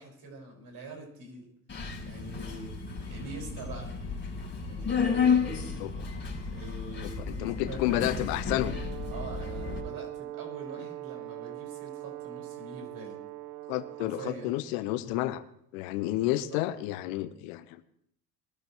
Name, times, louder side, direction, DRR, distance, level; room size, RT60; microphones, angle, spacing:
voice 1, 0.0-1.5 2.0-2.8 3.0-3.9 4.6-5.3 6.5-8.1 9.1-13.2 14.0-14.5 16.2-16.7, right 2 dB, 45° right, 1 dB, 5.4 m, -44 dB
Subway metro underground, 1.7-9.8, left 6 dB, 25° left, 5.1 m, -32 dB
voice 2, 7.3-8.8 13.7-15.4 15.7-17.8, left 15 dB, 65° left, 12 dB, 1.0 m, -30 dB
Brass instrument, 8.6-14.6, right 16 dB, 70° right, 1.0 m, -42 dB
20.5 x 13.0 x 3.1 m, 0.70 s
hypercardioid pair, 70°, 47 cm